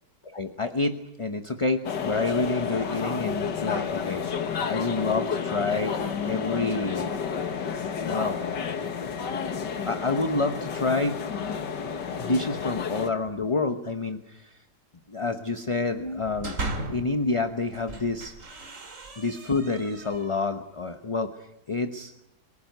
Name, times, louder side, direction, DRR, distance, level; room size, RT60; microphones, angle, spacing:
voice 1, 0.2-4.2 4.7-6.0 6.2-7.1 7.8-8.4 9.9-11.2 12.2-14.5 15.1-16.6 16.9-18.4 19.2-22.1, left 3 dB, 25° left, 8 dB, 0.7 m, -28 dB
sound 1, 1.8-13.1, left 6 dB, 90° left, 2.2 m, -31 dB
sound 2, 16.1-17.2 17.7-20.5, right 2 dB, 50° right, 2.8 m, -37 dB
24.5 x 17.5 x 9.3 m, 0.84 s
omnidirectional pair, 1.8 m